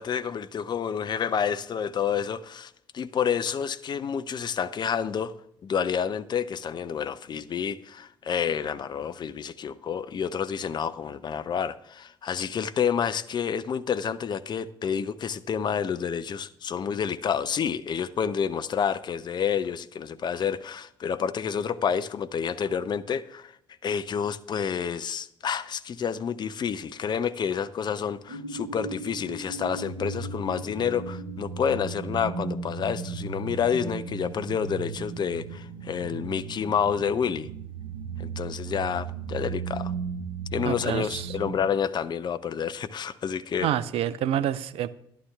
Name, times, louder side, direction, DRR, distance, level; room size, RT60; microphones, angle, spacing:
voice 1, 0.0-5.3 5.6-23.5 23.8-37.5 38.2-39.9 40.5-43.7, left 7 dB, 35° left, 0.6 m, -29 dB
sound 1, 28.3-41.6, right 5 dB, 85° right, 1.3 m, -36 dB
voice 2, 40.6-41.3 43.6-44.9, right 11 dB, 50° right, 0.6 m, -28 dB
11.5 x 11.0 x 3.4 m
figure-of-eight pair, 50°, 12 cm